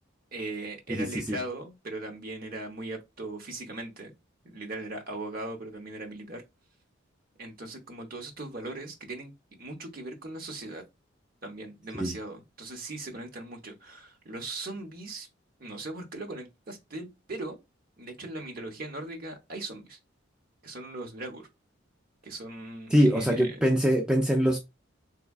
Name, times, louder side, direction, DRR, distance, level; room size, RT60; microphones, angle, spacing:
voice 1, 0.3-4.1 4.4-6.4 7.4-10.8 11.4-15.3 15.6-17.6 18.0-20.0 20.6-21.5 22.2-23.6, right 2 dB, 45° right, 0.9 m, -39 dB
voice 2, 0.9-1.4 11.9-12.1 22.9-24.6, equal, 5° right, 0.4 m, -23 dB
3.5 x 3.1 x 2.3 m
head